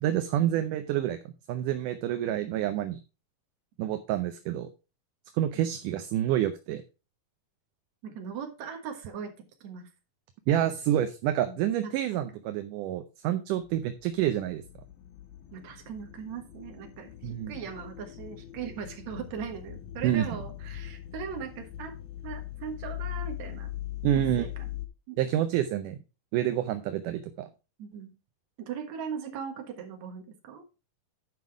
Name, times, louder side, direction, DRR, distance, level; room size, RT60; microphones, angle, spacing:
voice 1, 0.0-1.2 1.5-3.0 3.8-4.7 5.3-6.8 10.5-14.6 17.2-17.5 20.0-20.3 24.0-24.5 25.2-26.0 26.3-27.5, right 12 dB, 75° right, 8 dB, 2.1 m, -28 dB
voice 2, 8.0-9.3 9.6-9.9 11.4-12.4 15.5-22.0 22.2-23.7 24.4-24.6 25.1-25.2 27.8-28.1 28.6-30.6, right 7 dB, 60° right, 5 dB, 2.5 m, -39 dB
sound 1, 13.6-24.9, left 13 dB, 75° left, 2.3 m, -41 dB
9.6 x 5.4 x 4.7 m, 0.30 s
omnidirectional pair, 4.0 m